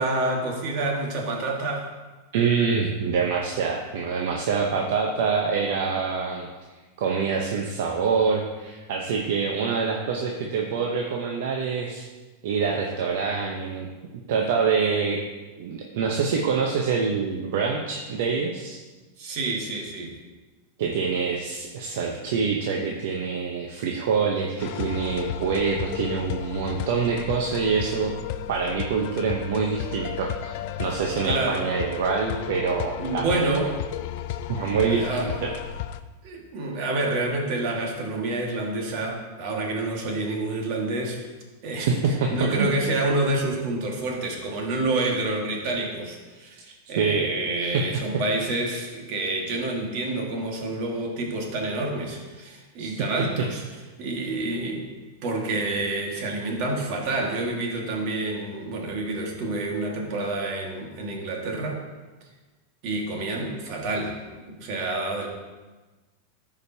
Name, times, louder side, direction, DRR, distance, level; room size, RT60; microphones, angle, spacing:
voice 1, 0.0-1.8 19.2-20.2 31.2-31.7 33.0-33.8 34.9-35.4 36.2-41.2 41.6-53.6 54.0-54.9 55.2-61.8 62.8-65.3, right 2 dB, 55° right, 0 dB, 1.8 m, -28 dB
voice 2, 2.3-6.5 7.0-12.0 12.4-13.9 14.3-15.2 15.6-18.8 20.8-28.1 28.5-33.5 34.5-35.5 41.9-42.3 42.6-42.7 47.0-47.8 52.8-53.1, right 5 dB, 70° right, 0 dB, 0.8 m, -26 dB
sound 1, 24.6-36.0, left 11 dB, 60° left, 0.4 m, -33 dB
13.0 x 5.1 x 2.8 m, 1.2 s
supercardioid pair, 135°, 0 cm